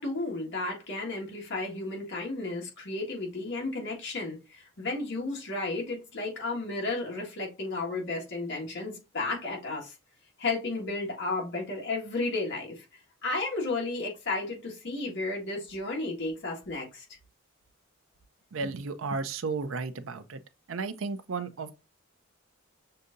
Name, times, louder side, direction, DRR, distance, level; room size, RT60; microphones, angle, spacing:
voice 1, 0.0-9.9 10.4-12.8 13.2-17.0, left 3 dB, 60° left, 1.7 m, -33 dB
voice 2, 18.5-20.4 20.7-21.8, right 4 dB, 70° right, 0.5 m, -33 dB
6.5 x 2.7 x 2.5 m
head